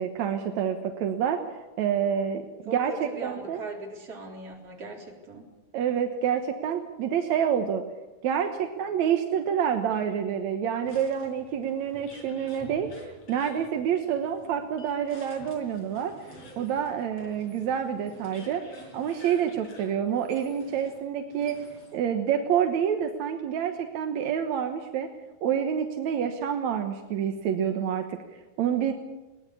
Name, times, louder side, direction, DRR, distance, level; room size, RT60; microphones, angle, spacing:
voice 1, 0.0-1.4 1.8-3.6 5.7-7.8 8.2-12.9 13.3-16.1 16.6-18.6 18.9-21.6 21.9-25.1 25.4-28.2 28.6-28.9, right 8 dB, 65° right, 5 dB, 2.0 m, -27 dB
voice 2, 2.7-5.5, right 2 dB, 40° right, 0 dB, 4.7 m, -39 dB
sound 1, 10.8-22.1, left 1 dB, 40° left, 5.5 m, -49 dB
21.0 x 19.0 x 8.5 m, 1.1 s
omnidirectional pair, 4.5 m